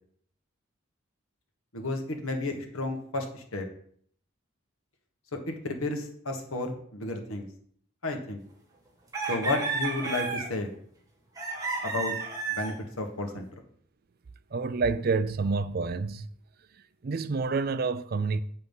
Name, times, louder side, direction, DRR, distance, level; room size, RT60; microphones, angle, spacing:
voice 1, 1.7-3.7 5.3-7.5 8.0-8.4 9.3-10.7 11.8-12.1 12.5-13.5, left 2 dB, 85° left, 1.6 m, -32 dB
sound 1, 9.1-10.6 11.4-12.8, right 4 dB, 15° right, 1.6 m, -32 dB
voice 2, 14.5-16.3 17.0-18.4, right 4 dB, 45° right, 0.4 m, -28 dB
7.8 x 5.9 x 5.4 m
head